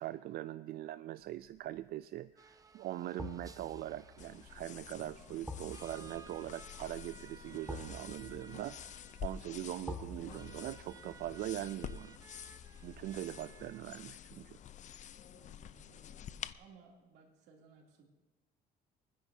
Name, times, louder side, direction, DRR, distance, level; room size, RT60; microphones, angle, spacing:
voice 1, 0.0-8.8 9.2-12.2 12.8-14.6, right 14 dB, 65° right, 13 dB, 0.4 m, -42 dB
sound 1, 1.4-1.8 3.2-14.2 14.5-14.7, left 2 dB, ahead, 1.2 m, -50 dB
sound 2, 2.4-13.8, right 5 dB, 20° right, 0.7 m, -59 dB
sound 3, 4.2-16.5, left 9 dB, 45° left, 0.5 m, -49 dB
voice 2, 15.3-18.1, right 4 dB, 85° right, 0 dB, 2.8 m, -61 dB
26.0 x 10.0 x 2.7 m, 1.2 s
cardioid pair, 110°, 17 cm